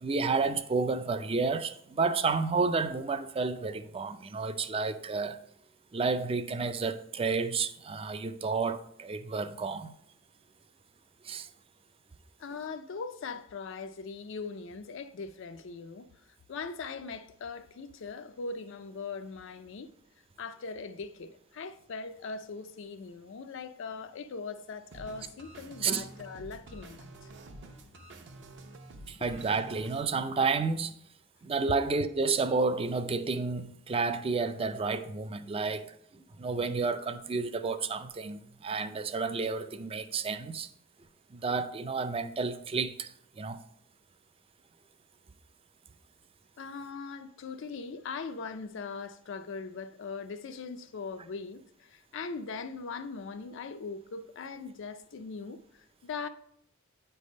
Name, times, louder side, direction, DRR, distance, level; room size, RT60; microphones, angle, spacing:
voice 1, 0.0-5.4 5.9-9.9 11.2-11.5 25.8-26.0 29.1-30.9 31.4-35.9 36.4-40.7 41.3-43.6, right 4 dB, 30° right, 0.4 m, -31 dB
voice 2, 12.4-16.1 16.5-19.9 20.4-27.3 46.6-56.3, left 4 dB, 65° left, 0.4 m, -40 dB
sound 1, 24.9-30.0, right 2 dB, 60° right, 0.8 m, -49 dB
9.1 x 3.4 x 5.3 m
head